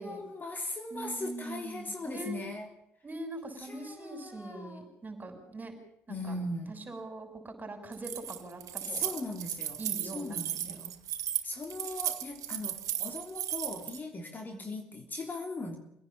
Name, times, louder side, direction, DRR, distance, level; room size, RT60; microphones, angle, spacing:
voice 1, 0.0-2.7 3.6-4.8 6.1-6.8 8.9-9.8 10.1-11.0 11.4-15.8, left 2 dB, 25° left, 3 dB, 3.4 m, -39 dB
voice 2, 0.9-2.4 3.0-5.7 6.1-6.4 6.7-9.0 9.8-10.8 14.5-14.6, right 2 dB, 25° right, 4 dB, 6.7 m, -42 dB
Keys jangling, 7.9-14.0, right 11 dB, 50° right, 2.1 m, -35 dB
25.0 x 17.0 x 7.4 m, 0.79 s
figure-of-eight pair, 55°, 7 cm